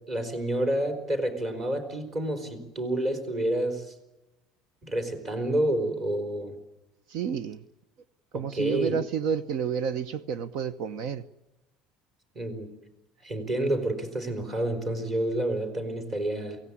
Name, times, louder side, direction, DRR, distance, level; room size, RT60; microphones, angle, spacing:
voice 1, 0.1-3.9 4.8-6.6 8.3-9.0 12.3-12.7 13.2-16.6, right 1 dB, 25° right, 8 dB, 4.2 m, -29 dB
voice 2, 7.1-7.6 8.3-11.2, right 7 dB, 60° right, 15 dB, 0.9 m, -30 dB
23.5 x 17.5 x 9.8 m, 1.0 s
cardioid pair, 165°, 0 cm